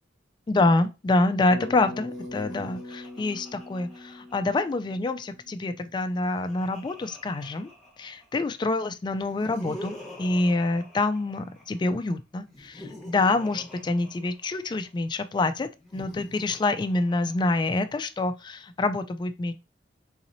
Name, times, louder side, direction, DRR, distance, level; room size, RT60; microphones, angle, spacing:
voice 1, 0.5-7.7 8.0-19.5, left 2 dB, 25° left, 0.3 m, -26 dB
Bass guitar, 1.5-5.6, left 1 dB, 90° right, 0.9 m, -41 dB
Laughter, 2.0-4.8 5.9-8.4 9.1-11.8 12.5-14.9 15.8-17.9, left 1 dB, ahead, 1.1 m, -46 dB
3.9 x 3.0 x 2.6 m
head